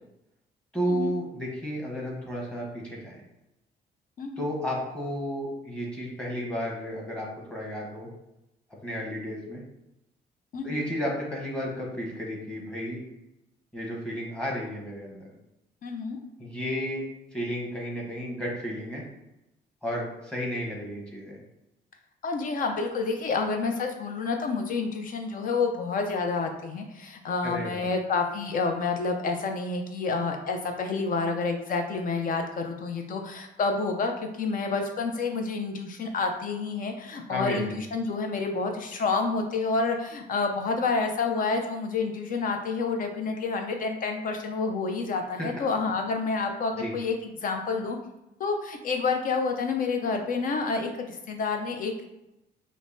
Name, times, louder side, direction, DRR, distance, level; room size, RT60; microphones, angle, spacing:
voice 1, 0.7-3.2 4.4-8.1 8.8-9.6 10.6-13.0 13.7-15.3 16.4-17.0 17.3-19.0 19.8-21.4 27.4-27.9 37.3-37.8 45.4-45.5 46.8-46.9, equal, 5° left, -3 dB, 1.0 m, -32 dB
voice 2, 15.8-16.2 22.2-34.1 34.4-48.0 48.4-52.0, left 4 dB, 50° left, 4 dB, 0.5 m, -29 dB
5.2 x 2.0 x 2.6 m, 0.90 s
cardioid pair, 135°, 18 cm